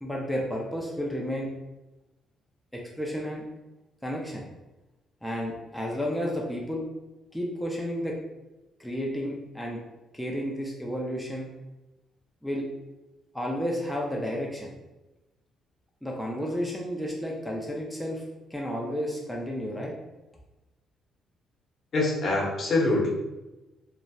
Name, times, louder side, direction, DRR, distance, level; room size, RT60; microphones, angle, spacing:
voice 1, 0.0-1.5 2.7-3.4 4.0-4.4 5.2-6.8 7.3-8.2 8.8-9.8 10.1-11.5 12.4-12.7 13.3-14.7 16.0-18.2 18.5-19.9, equal, 5° left, -2 dB, 0.4 m, -32 dB
voice 2, 21.9-23.1, left 2 dB, 55° left, -3 dB, 0.8 m, -24 dB
2.7 x 2.0 x 2.2 m, 1.0 s
cardioid pair, 90°, 0 cm